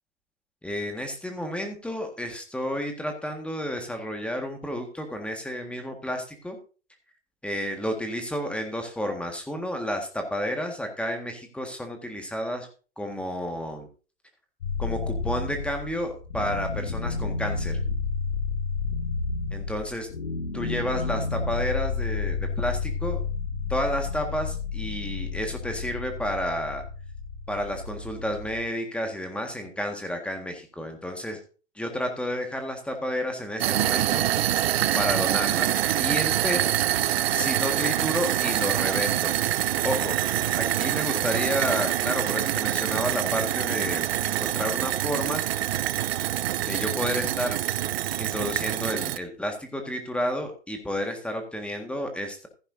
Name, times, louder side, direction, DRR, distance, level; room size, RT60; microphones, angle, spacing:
voice 1, 0.6-6.6 7.4-12.7 13.0-13.9 14.8-17.9 19.5-20.1 20.5-23.2 23.7-26.8 27.5-31.4 31.7-34.2 34.9-36.6 37.3-39.3 39.8-40.1 40.5-45.5 46.7-47.6 48.2-52.5, equal, 5° left, 4 dB, 1.7 m, -31 dB
sound 1, 14.6-28.6, left 4 dB, 65° left, 2.3 m, -31 dB
sound 2, 33.6-49.2, right 13 dB, 55° right, 0.7 m, -25 dB
15.5 x 9.9 x 2.7 m, 0.36 s
hypercardioid pair, 120°, 36 cm